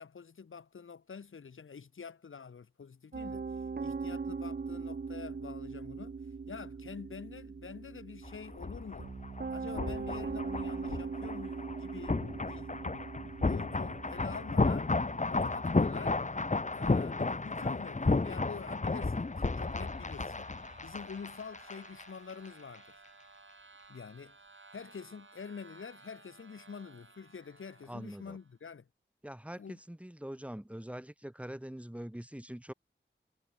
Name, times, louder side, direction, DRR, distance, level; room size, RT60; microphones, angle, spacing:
voice 1, 0.0-3.5 3.8-6.2 6.5-9.1 9.5-12.7 13.0-14.9 15.3-16.2 16.7-20.5 20.8-23.0 23.9-24.4 24.7-28.9 29.6-29.8, left 6 dB, 90° left, 1.6 m, -47 dB
Piano, 3.1-20.2, right 5 dB, 50° right, 0.9 m, -42 dB
sound 1, 8.2-22.0 22.3-22.5, left 3 dB, 35° left, 1.4 m, -33 dB
sound 2, 18.9-28.5, right 4 dB, 70° right, 7.4 m, -58 dB
voice 2, 27.9-28.4 29.2-32.7, equal, 5° right, 2.3 m, -43 dB
wide cardioid pair, 60°, 20 cm